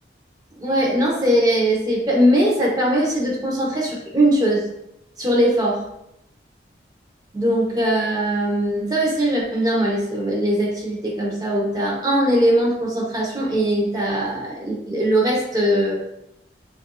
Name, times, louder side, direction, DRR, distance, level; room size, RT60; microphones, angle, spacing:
voice 1, 0.6-4.6 5.2-5.8 7.3-16.0, right 1 dB, 20° right, -3 dB, 0.9 m, -20 dB
5.9 x 2.5 x 2.3 m, 0.81 s
head